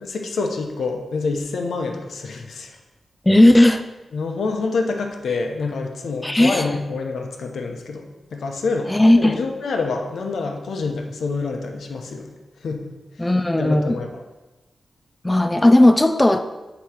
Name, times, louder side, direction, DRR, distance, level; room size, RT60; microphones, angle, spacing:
voice 1, 0.0-2.8 4.1-8.9 9.2-12.3 12.6-13.0 13.6-14.2, left 4 dB, 80° left, 3 dB, 0.9 m, -27 dB
voice 2, 3.3-3.8 6.2-6.7 8.9-9.4 13.2-14.0 15.2-16.4, left 1 dB, 15° left, 8 dB, 0.3 m, -15 dB
8.1 x 3.1 x 5.9 m, 1.1 s
wide cardioid pair, 115°, 0 cm